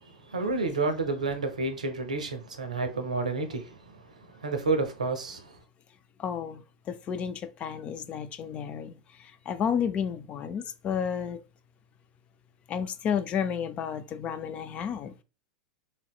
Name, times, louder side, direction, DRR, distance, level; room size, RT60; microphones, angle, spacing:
voice 1, 0.3-3.7 4.4-5.4, right 3 dB, 90° right, 0.6 m, -29 dB
voice 2, 6.2-8.9 9.2-11.4 12.7-15.1, left 7 dB, 35° left, 0.4 m, -32 dB
3.2 x 2.7 x 2.3 m
hypercardioid pair, 95°, 4 cm